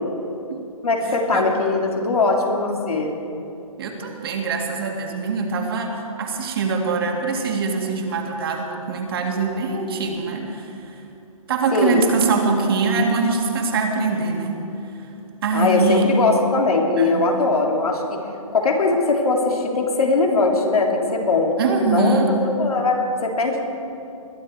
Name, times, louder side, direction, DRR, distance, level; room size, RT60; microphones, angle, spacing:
voice 1, 0.8-3.1 11.7-12.1 15.5-18.2 18.5-21.5 21.8-23.6, left 3 dB, 90° left, 0 dB, 3.1 m, -20 dB
voice 2, 3.8-11.0 11.5-14.7 15.0-15.1 15.4-16.1 17.0-17.3 21.6-22.3, right 4 dB, 40° right, 2 dB, 2.1 m, -23 dB
21.0 x 11.5 x 4.7 m, 2.7 s
hypercardioid pair, 165°, 18 cm